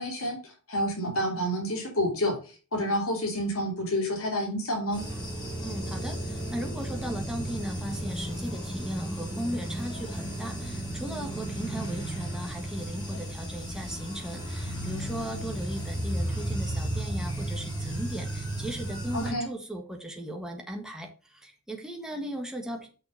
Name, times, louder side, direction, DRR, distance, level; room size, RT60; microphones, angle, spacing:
voice 1, 0.0-5.0 19.1-19.5, equal, 80° left, 0 dB, 2.8 m, -29 dB
sound 1, 4.9-19.3, right 1 dB, 20° left, 3.8 m, -34 dB
voice 2, 5.6-22.9, equal, 5° right, 2 dB, 1.5 m, -37 dB
6.5 x 5.8 x 5.1 m, 0.36 s
head